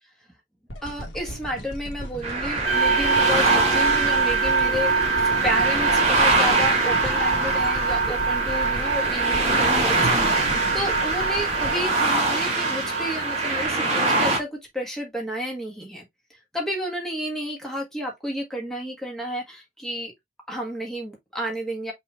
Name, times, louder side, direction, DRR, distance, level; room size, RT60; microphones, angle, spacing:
sound 1, 0.7-12.9 13.5-13.6, equal, 85° left, 1.7 m, -37 dB
voice 1, 0.8-16.0 16.5-20.1 20.5-21.9, equal, ahead, 1.5 m, -31 dB
sound 2, 2.2-14.4, right 2 dB, 35° right, 1.7 m, -24 dB
sound 3, 2.6-13.7, right 4 dB, 65° right, 1.6 m, -25 dB
5.6 x 2.8 x 3.4 m
head